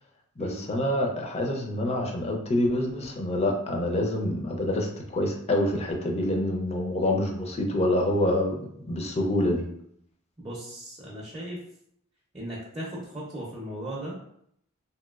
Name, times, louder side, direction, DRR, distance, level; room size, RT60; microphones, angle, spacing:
voice 1, 0.4-9.7, left 1 dB, 30° left, 2 dB, 0.5 m, -26 dB
voice 2, 10.4-11.6 12.3-14.2, right 1 dB, 25° right, -6 dB, 0.6 m, -37 dB
2.9 x 2.8 x 2.3 m, 0.71 s
head